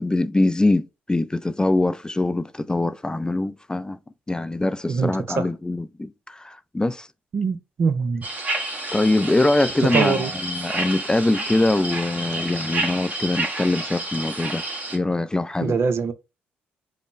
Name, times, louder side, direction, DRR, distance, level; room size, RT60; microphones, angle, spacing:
voice 1, 0.0-4.0 4.3-7.1 8.9-14.6 14.9-15.8, left 2 dB, 15° left, 0.3 m, -23 dB
voice 2, 4.9-5.5 7.3-8.2 9.9-10.3 15.6-16.1, right 5 dB, 55° right, 0.6 m, -23 dB
sound 1, 8.2-15.0, right 2 dB, 30° right, 1.4 m, -29 dB
5.0 x 2.0 x 4.1 m
hypercardioid pair, 45°, 5 cm